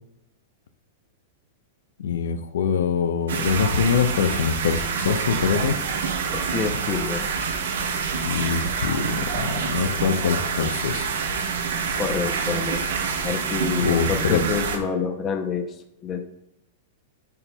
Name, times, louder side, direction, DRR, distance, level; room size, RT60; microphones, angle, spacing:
voice 1, 2.0-5.8 8.2-11.1 13.8-14.4, left 7 dB, 85° left, 10 dB, 0.6 m, -24 dB
sound 1, 3.3-14.8, right 5 dB, 90° right, 0.9 m, -27 dB
voice 2, 6.3-7.3 12.0-12.8 13.2-15.7 16.0-16.2, left 5 dB, 20° left, 6 dB, 0.6 m, -27 dB
10.5 x 4.5 x 2.3 m, 0.87 s
supercardioid pair, 170°, 0 cm